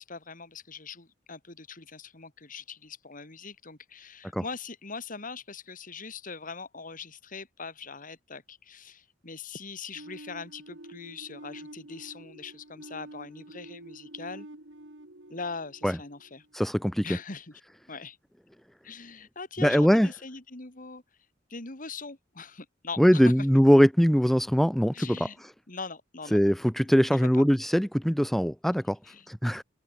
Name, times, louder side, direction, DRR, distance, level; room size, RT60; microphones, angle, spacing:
voice 1, 0.0-14.5 15.3-16.4 17.0-17.6 17.9-18.2 18.8-21.0 21.5-23.3 24.9-25.4 25.7-26.4 26.8-27.4 29.0-29.3, left 4 dB, 45° left, 2.7 m, -41 dB
sound 1, 10.0-16.7, right 1 dB, 75° right, 3.6 m, -48 dB
voice 2, 16.5-17.0 19.6-20.1 23.0-25.3 26.3-29.0 29.3-29.6, equal, ahead, 0.9 m, -22 dB
head